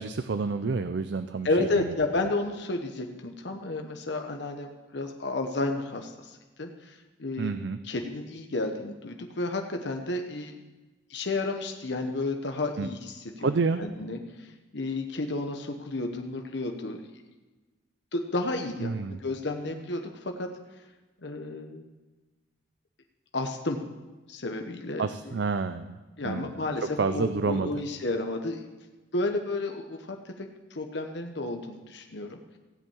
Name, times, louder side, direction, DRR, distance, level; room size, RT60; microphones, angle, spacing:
voice 1, 0.0-1.5 1.7-1.8 7.4-7.8 12.8-12.9 13.4-13.8 18.8-19.2 25.0-26.0 26.2-26.5 27.0-27.7, right 4 dB, 60° right, 11 dB, 0.4 m, -28 dB
voice 2, 1.4-7.6 7.8-10.5 11.1-13.5 13.8-17.0 18.1-20.5 21.2-21.8 23.3-23.8 24.3-25.3 26.2-28.6 29.1-32.6, left 2 dB, 60° left, 4 dB, 0.9 m, -32 dB
16.0 x 5.5 x 8.7 m, 1.2 s
head